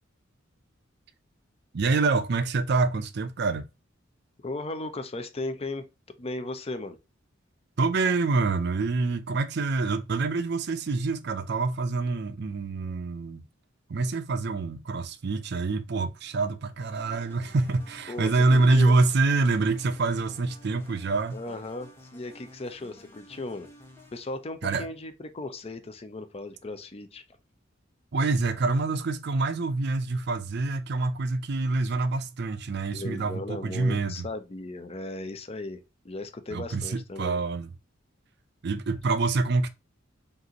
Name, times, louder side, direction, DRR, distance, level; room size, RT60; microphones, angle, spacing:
voice 1, 1.7-3.7 7.8-13.4 13.9-21.4 24.6-24.9 28.1-34.2 36.5-37.7 38.6-39.7, right 3 dB, 60° right, 0.5 m, -26 dB
voice 2, 4.4-5.8 6.2-7.0 18.1-19.0 21.3-23.7 24.1-27.2 32.9-37.4, left 2 dB, 30° left, 0.5 m, -36 dB
sound 1, 16.8-24.4, left 1 dB, 15° left, 1.0 m, -52 dB
5.2 x 2.6 x 2.9 m
head